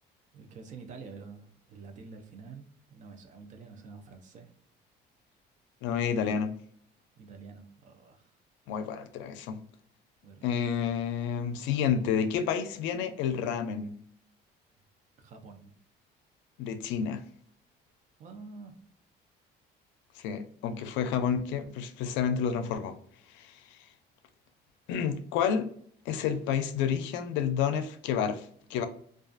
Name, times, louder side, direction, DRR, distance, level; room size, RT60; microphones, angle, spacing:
voice 1, 0.3-4.5 7.2-8.3 10.2-10.5 15.2-15.7 18.2-18.8, right 4 dB, 40° right, 0.5 m, -48 dB
voice 2, 5.8-6.5 8.7-9.6 10.4-13.9 16.6-17.2 20.2-23.0 23.3-23.8 24.9-25.7 26.1-28.9, left 7 dB, 90° left, 0.4 m, -30 dB
2.3 x 2.3 x 2.4 m
cardioid pair, 145°, 19 cm